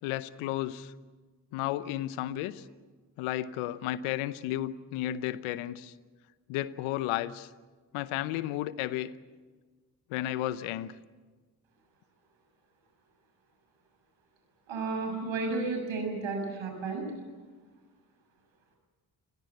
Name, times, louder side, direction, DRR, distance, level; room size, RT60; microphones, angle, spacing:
voice 1, 0.0-0.9 1.5-2.6 3.2-5.9 6.5-7.5 7.9-9.1 10.1-10.9, left 14 dB, 85° left, 16 dB, 0.9 m, -33 dB
voice 2, 14.7-17.0, right 3 dB, 70° right, 3 dB, 7.1 m, -32 dB
29.0 x 17.5 x 8.3 m, 1.4 s
hypercardioid pair, 40°, 48 cm